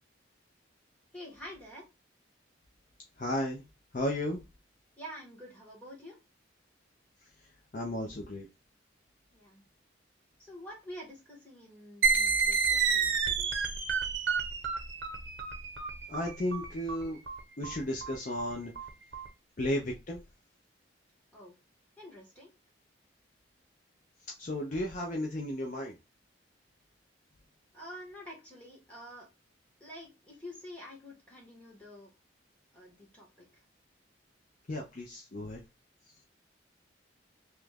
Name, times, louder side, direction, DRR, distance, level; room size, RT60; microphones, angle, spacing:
voice 1, 1.1-1.9 5.0-6.2 9.3-9.6 10.4-13.5 21.3-21.5 22.0-22.5 27.7-29.3 29.8-32.1 32.7-33.6, equal, 5° left, -3 dB, 1.4 m, -48 dB
voice 2, 3.2-3.6 3.9-4.4 7.7-8.5 16.1-17.2 17.6-18.7 19.6-20.2 24.4-26.0 34.7-35.6, left 1 dB, 40° left, 0 dB, 0.5 m, -34 dB
sound 1, 12.0-19.3, right 5 dB, 75° right, 0.9 m, -30 dB
3.1 x 2.4 x 3.3 m, 0.25 s
head